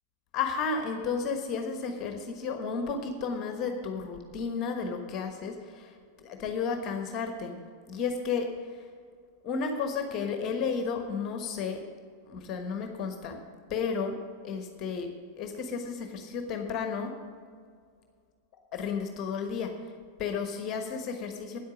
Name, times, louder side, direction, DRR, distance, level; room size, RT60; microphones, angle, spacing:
voice 1, 0.3-7.6 7.9-8.5 9.4-11.8 12.3-13.4 13.7-14.2 14.4-15.1 15.4-17.1 18.7-19.7 20.2-21.6, left 5 dB, 35° left, 5 dB, 1.2 m, -32 dB
10.0 x 8.6 x 6.2 m, 2.1 s
figure-of-eight pair, 90°, 0 cm